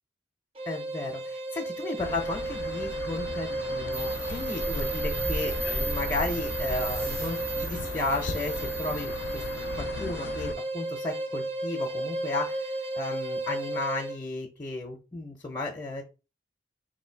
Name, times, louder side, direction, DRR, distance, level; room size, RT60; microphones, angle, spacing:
sound 1, 0.6-14.2, right 2 dB, 30° right, 0.5 m, -34 dB
voice 1, 0.7-9.4 9.8-16.0, left 2 dB, 20° left, 3 dB, 0.6 m, -34 dB
sound 2, 2.0-10.5, left 4 dB, 85° left, 0.4 m, -38 dB
sound 3, 3.9-9.7, right 2 dB, 55° right, 0.9 m, -35 dB
3.1 x 2.7 x 4.4 m, 0.31 s
head